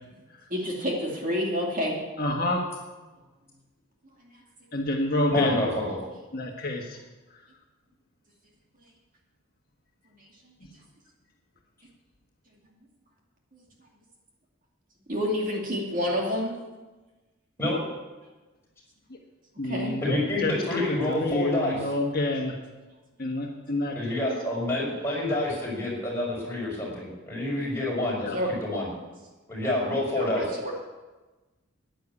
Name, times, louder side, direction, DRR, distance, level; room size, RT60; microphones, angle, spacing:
voice 1, 0.5-2.0 15.1-16.5 19.6-20.0 28.3-28.5 30.2-30.7, equal, 40° right, -1 dB, 2.4 m, -28 dB
voice 2, 2.2-2.7 4.7-5.7 6.3-7.0 19.1-19.2 19.6-20.5 20.9-22.6 23.2-24.2 28.2-28.4, left 2 dB, 45° left, 0 dB, 1.5 m, -28 dB
voice 3, 5.3-6.0 17.6-17.8 20.0-21.8 23.9-28.3 28.6-28.9 29.5-30.5, left 1 dB, 10° left, -5 dB, 5.2 m, -28 dB
10.5 x 10.5 x 8.5 m, 1.2 s
head